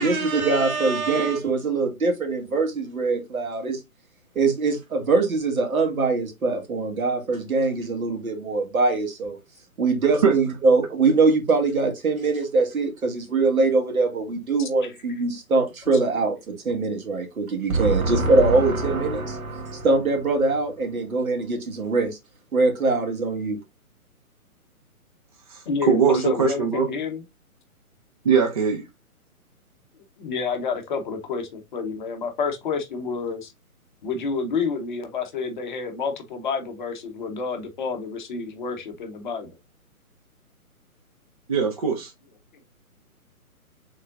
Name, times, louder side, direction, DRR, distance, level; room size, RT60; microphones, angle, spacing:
voice 1, 0.0-3.8 4.4-9.4 9.8-22.2 22.5-23.6, right 3 dB, 70° right, 2.1 m, -22 dB
voice 2, 14.6-14.9 25.7-27.2 30.2-33.5 34.0-39.5, left 5 dB, 35° left, 0.9 m, -29 dB
voice 3, 25.5-26.9 28.2-28.8 41.5-42.1, right 6 dB, 25° right, 0.5 m, -21 dB
5.2 x 3.8 x 2.5 m
hypercardioid pair, 145°, 44 cm